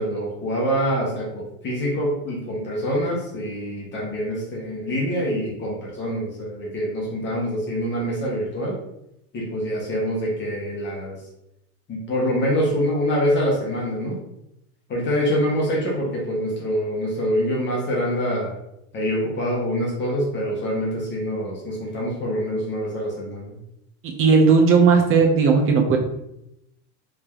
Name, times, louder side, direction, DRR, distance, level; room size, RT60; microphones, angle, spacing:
voice 1, 0.0-8.8 9.3-11.2 11.9-14.2 14.9-18.5 18.9-23.6, equal, 25° left, -4 dB, 1.1 m, -25 dB
voice 2, 24.0-26.0, right 5 dB, 30° right, 2 dB, 0.7 m, -16 dB
3.4 x 2.7 x 3.5 m, 0.82 s
supercardioid pair, 135°, 41 cm